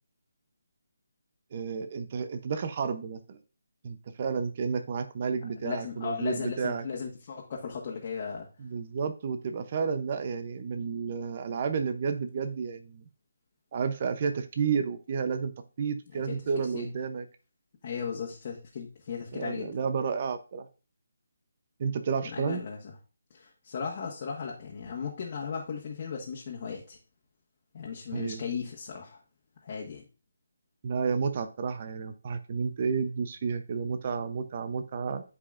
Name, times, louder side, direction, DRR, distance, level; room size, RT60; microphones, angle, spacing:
voice 1, 1.5-3.4 3.8-6.8 8.6-13.0 13.7-15.5 15.8-17.3 19.3-20.7 21.8-22.6 28.1-28.4 30.8-35.2, right 5 dB, 35° right, 8 dB, 0.7 m, -31 dB
voice 2, 5.6-8.5 16.3-16.4 16.7-16.9 17.8-19.8 22.2-22.9 23.3-27.0 27.7-29.2 29.6-30.0, left 6 dB, 35° left, -2 dB, 1.4 m, -36 dB
12.0 x 4.9 x 2.5 m, 0.35 s
hypercardioid pair, 165°, 0 cm